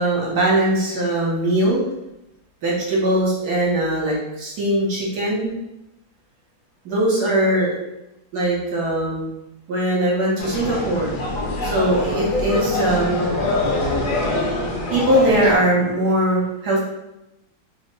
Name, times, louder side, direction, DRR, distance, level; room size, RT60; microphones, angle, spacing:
voice 1, 0.0-1.8 2.6-5.5 6.8-7.7 8.3-9.3 9.7-11.1 11.6-13.3 14.9-16.8, right 1 dB, 65° right, -5 dB, 1.3 m, -20 dB
sound 1, 10.4-15.6, left 2 dB, 65° left, 1.1 m, -24 dB
3.4 x 2.1 x 3.0 m, 0.89 s
omnidirectional pair, 2.1 m